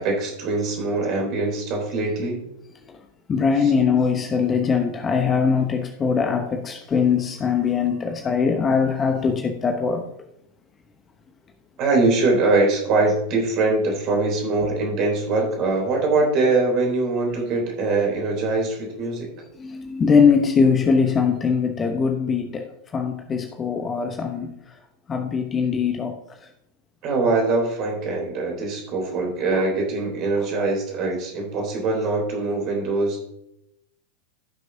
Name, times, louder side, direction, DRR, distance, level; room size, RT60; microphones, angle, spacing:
voice 1, 0.0-2.4 11.8-19.3 27.0-33.2, right 3 dB, 40° right, 1 dB, 3.5 m, -22 dB
voice 2, 3.3-10.0 19.6-24.5 25.1-26.2 29.5-29.7 30.4-30.5, left 6 dB, 20° left, 5 dB, 0.9 m, -21 dB
16.0 x 6.4 x 2.8 m, 0.81 s
figure-of-eight pair, 90°, 0 cm